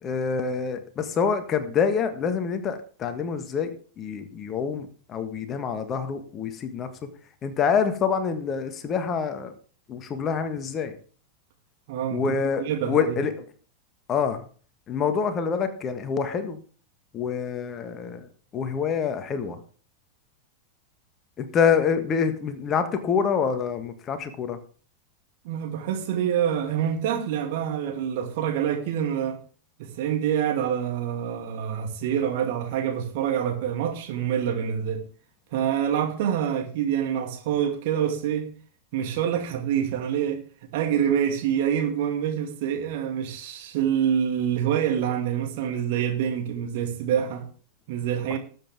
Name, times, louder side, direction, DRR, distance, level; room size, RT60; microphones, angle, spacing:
voice 1, 0.0-6.9 7.4-9.5 9.9-11.0 12.1-13.4 14.1-14.4 14.9-16.6 17.1-19.6 21.4-24.6 48.3-48.4, left 6 dB, 30° left, 1.6 m, -26 dB
voice 2, 11.9-12.2 12.6-13.2 25.4-29.4 29.8-35.0 35.5-38.5 38.9-40.4 40.7-47.4 47.9-48.4, right 9 dB, 50° right, 2.3 m, -26 dB
19.5 x 7.8 x 3.6 m
figure-of-eight pair, 90°, 0 cm